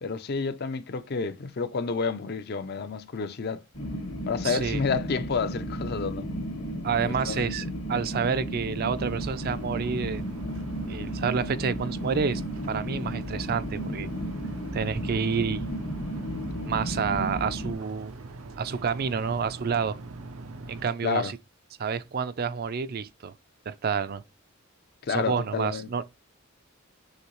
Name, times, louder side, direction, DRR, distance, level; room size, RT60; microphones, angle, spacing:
voice 1, 0.0-3.6 4.3-6.3 7.0-7.6 21.0-21.3 25.1-26.0, left 5 dB, 50° left, 0.5 m, -30 dB
sound 1, 3.7-17.7, equal, 65° left, 1.4 m, -34 dB
voice 2, 4.4-4.8 6.8-10.2 10.9-12.4 12.7-14.1 14.7-15.7 16.7-18.1 18.6-20.0 20.7-21.4 21.8-23.3 23.7-24.2 25.1-26.0, right 6 dB, 45° right, 0.4 m, -29 dB
sound 2, 9.0-20.9, right 3 dB, 90° right, 0.6 m, -43 dB
6.4 x 2.7 x 3.0 m
head